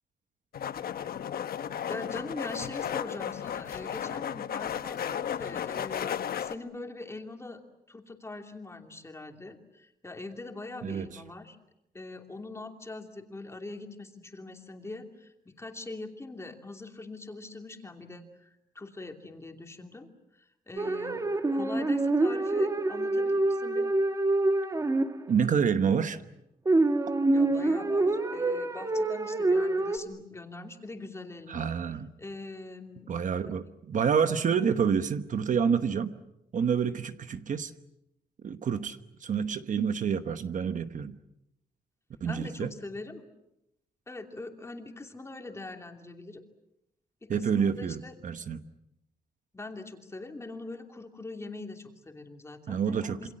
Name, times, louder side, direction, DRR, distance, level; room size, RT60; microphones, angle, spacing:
sound 1, 0.5-6.5, left 9 dB, 70° left, 1.0 m, -34 dB
voice 1, 1.9-7.6 7.9-11.6 11.9-18.5 18.7-23.9 27.3-31.7 32.2-33.1 34.6-34.7 42.2-43.2 44.1-46.4 47.2-48.2 49.5-53.3, left 2 dB, 15° left, 4 dB, 2.8 m, -42 dB
voice 2, 10.8-11.2 25.3-26.2 31.5-32.1 33.1-36.2 36.5-37.7 38.4-41.2 42.2-42.7 47.3-48.6 52.7-53.3, right 7 dB, 50° right, 10 dB, 1.1 m, -28 dB
sound 2, 20.8-25.3 26.7-30.0, right 2 dB, 20° right, 1.5 m, -26 dB
27.5 x 26.0 x 7.6 m, 0.84 s
wide cardioid pair, 160°, 16 cm